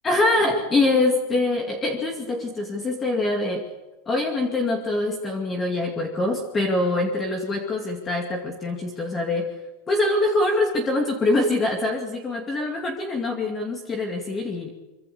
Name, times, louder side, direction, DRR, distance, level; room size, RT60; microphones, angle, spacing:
voice 1, 0.0-3.7 4.1-9.5 9.9-14.7, left 2 dB, 15° left, 3 dB, 2.3 m, -24 dB
25.5 x 24.0 x 6.8 m, 1.1 s
supercardioid pair, 175°, 0 cm